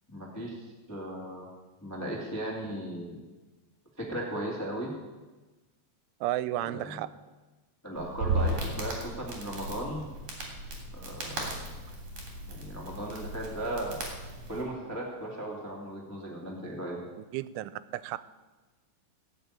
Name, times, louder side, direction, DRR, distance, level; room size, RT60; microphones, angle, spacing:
voice 1, 0.1-0.6 0.9-1.5 1.8-3.2 4.0-4.9 6.6-7.0 7.8-10.1 10.9-11.6 12.5-14.0 14.5-17.0, right 1 dB, 10° left, -3 dB, 0.9 m, -36 dB
voice 2, 6.2-7.1 17.3-18.2, right 15 dB, 90° right, 16 dB, 3.0 m, -32 dB
Crackle, 8.0-14.6, right 2 dB, 40° right, 3.8 m, -35 dB
17.5 x 6.7 x 8.9 m, 1.2 s
omnidirectional pair, 5.4 m